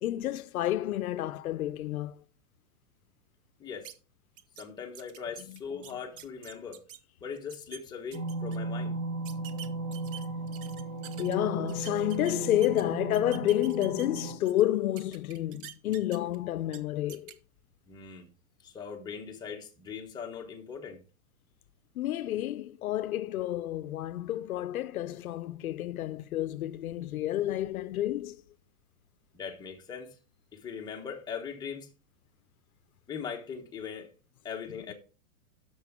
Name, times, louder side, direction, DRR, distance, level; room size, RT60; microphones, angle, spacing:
voice 1, 0.0-2.2 5.5-5.6 5.9-6.0 11.2-17.3 21.9-28.4, left 13 dB, 85° left, 0.8 m, -30 dB
sound 1, 3.8-3.9 4.4-4.6 4.9-7.0 7.4-7.8 8.1-8.6 9.2-11.3 11.7-12.8 13.1-14.6 15.0-16.4 16.7-16.8 17.1-17.3, right 10 dB, 40° right, 1.0 m, -46 dB
voice 2, 4.6-6.8 7.2-9.0 17.9-18.3 18.6-21.0 29.3-30.2 30.5-31.9 33.1-34.1 34.4-34.9, left 6 dB, 10° left, 1.2 m, -40 dB
sound 2, 8.1-14.4, right 3 dB, 20° right, 2.4 m, -36 dB
11.0 x 7.1 x 3.7 m
supercardioid pair, 165°, 42 cm